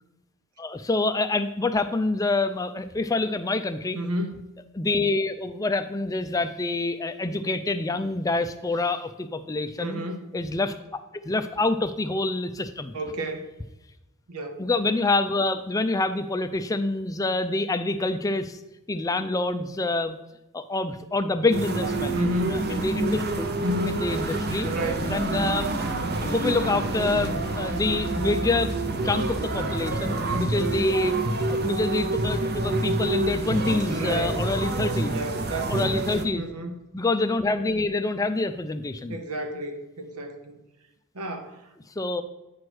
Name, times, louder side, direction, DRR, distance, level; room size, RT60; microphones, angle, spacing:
voice 1, 0.6-4.0 4.7-10.0 10.3-12.9 14.6-18.6 18.9-20.2 20.5-22.2 22.5-23.5 23.9-24.7 25.1-25.9 26.2-28.7 29.0-31.2 31.5-35.2 35.7-36.4 36.9-39.2 42.0-42.2, left 2 dB, 15° left, 9 dB, 0.3 m, -26 dB
voice 2, 3.9-4.4 9.8-10.3 12.9-13.5 14.3-14.6 22.1-22.6 23.6-24.0 24.6-25.1 30.0-30.6 33.9-34.4 35.1-35.9 36.3-36.9 39.1-40.6 41.1-41.6, equal, 90° right, 6 dB, 0.9 m, -31 dB
sound 1, 21.5-36.3, right 2 dB, 45° right, 0.7 m, -27 dB
9.3 x 3.2 x 6.1 m, 0.97 s
head